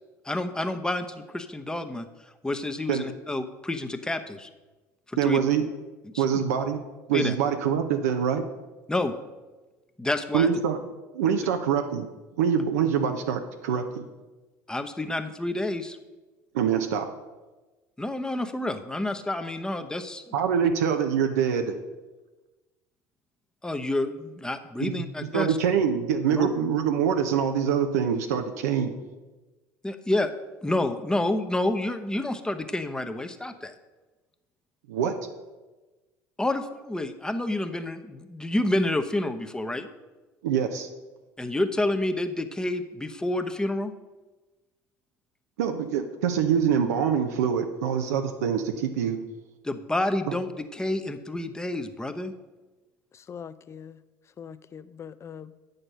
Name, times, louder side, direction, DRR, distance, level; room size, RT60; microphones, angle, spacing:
voice 1, 0.2-2.1 2.4-4.5 5.1-5.4 6.1-6.4 7.1-7.3 8.9-9.1 10.0-10.5 14.7-16.0 18.0-20.2 23.6-25.6 26.4-26.5 29.8-30.3 30.6-33.7 36.4-39.9 41.4-43.9 49.6-52.3, left 1 dB, 10° left, 8 dB, 0.9 m, -29 dB
voice 2, 5.2-5.6 6.2-6.8 7.1-8.4 10.3-10.8 11.1-12.1 12.4-14.1 16.5-17.1 20.3-21.8 24.8-24.9 25.3-28.9 34.9-35.1 40.4-40.9 45.6-49.2, right 8 dB, 80° right, 5 dB, 0.7 m, -25 dB
voice 3, 53.1-54.0 54.4-55.6, left 7 dB, 35° left, 15 dB, 0.5 m, -42 dB
8.8 x 6.6 x 5.5 m, 1.2 s
hypercardioid pair, 75°, 8 cm